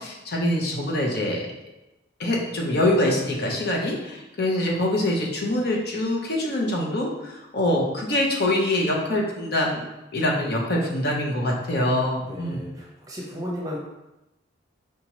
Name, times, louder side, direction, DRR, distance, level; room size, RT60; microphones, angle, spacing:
voice 1, 0.0-1.4 2.2-9.8 10.1-12.6, left 1 dB, 55° left, -1 dB, 0.6 m, -24 dB
voice 2, 12.3-13.8, equal, 20° right, -3 dB, 0.7 m, -34 dB
4.6 x 2.8 x 2.9 m, 0.94 s
head